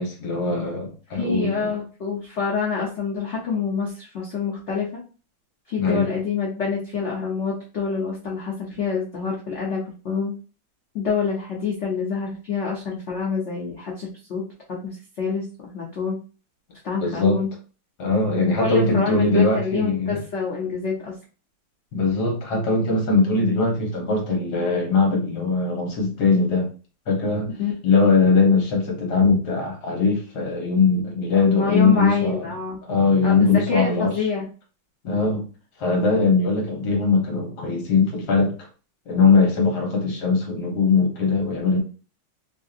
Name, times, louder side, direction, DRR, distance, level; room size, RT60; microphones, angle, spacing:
voice 1, 0.0-1.7 5.8-6.1 17.0-17.4 18.0-20.2 21.9-26.7 27.1-27.5 27.8-32.5 32.9-34.1 35.0-35.4 35.8-38.5 39.1-41.8, left 4 dB, 55° left, 0 dB, 1.5 m, -20 dB
voice 2, 1.1-4.9 5.7-10.4 10.9-14.4 14.7-15.4 15.7-16.2 16.8-17.5 18.6-21.1 27.6-27.7 31.3-32.8 33.2-34.5, left 5 dB, 80° left, -3 dB, 0.6 m, -27 dB
3.3 x 2.7 x 2.4 m, 0.36 s
omnidirectional pair, 2.2 m